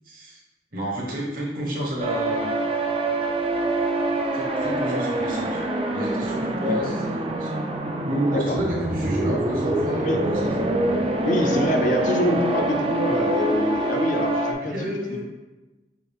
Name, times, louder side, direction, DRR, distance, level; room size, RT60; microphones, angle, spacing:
voice 1, 0.0-0.4 0.7-2.5 4.3-7.5 8.1-10.7 11.4-11.7 14.6-15.2, equal, 50° right, -2 dB, 1.0 m, -30 dB
sound 1, 2.0-14.5, right 2 dB, 30° right, 0.3 m, -25 dB
voice 2, 11.2-15.2, left 1 dB, 45° left, 3 dB, 0.4 m, -25 dB
5.7 x 2.3 x 3.4 m, 1.1 s
head